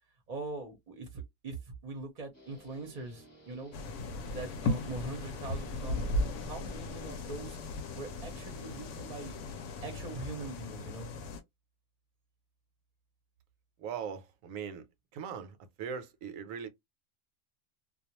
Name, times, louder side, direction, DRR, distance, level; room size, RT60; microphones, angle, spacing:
voice 1, 0.3-3.7 4.3-7.6 7.9-9.3 9.8-11.1, right 3 dB, 40° right, 0.6 m, -42 dB
Guitar, 2.3-10.0, left 1 dB, 15° left, 0.9 m, -56 dB
sound 1, 3.7-11.4, left 2 dB, 70° left, 0.9 m, -37 dB
voice 2, 13.8-14.9 15.1-16.7, right 7 dB, 80° right, 1.0 m, -40 dB
2.3 x 2.2 x 2.8 m
omnidirectional pair, 1.4 m